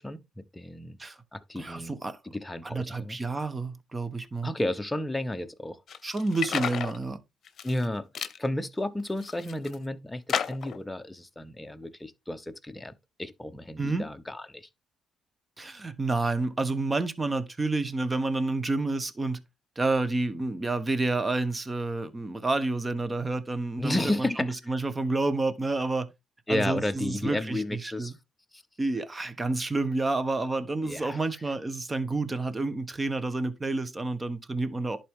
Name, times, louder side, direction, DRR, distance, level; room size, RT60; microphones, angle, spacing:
voice 1, 0.0-1.0 1.3-1.9 2.2-3.2 4.4-5.8 7.6-8.1 8.4-12.9 13.2-14.7 23.8-24.5 26.5-28.1 28.5-28.6 30.8-31.2, left 1 dB, 10° left, 0.9 m, -32 dB
voice 2, 1.6-2.2 2.6-4.5 6.0-7.2 13.8-14.1 15.6-19.4 19.8-26.1 26.5-28.1 28.8-35.0, right 3 dB, 25° right, 1.1 m, -29 dB
sound 1, 5.9-7.0 7.5-7.9 8.2-8.4 9.0-9.8 10.3-10.8, left 8 dB, 60° left, 0.8 m, -32 dB
11.0 x 4.3 x 3.7 m
cardioid pair, 90°, 0 cm